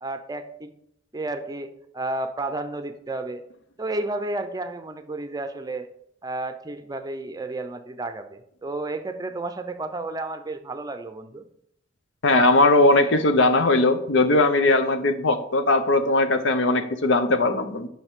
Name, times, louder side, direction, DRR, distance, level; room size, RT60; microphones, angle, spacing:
voice 1, 0.0-0.7 1.1-3.4 3.8-5.9 6.2-11.4, right 2 dB, 20° right, 9 dB, 0.6 m, -32 dB
voice 2, 12.2-17.9, left 2 dB, 70° left, 9 dB, 0.8 m, -19 dB
9.7 x 5.7 x 3.7 m, 0.74 s
head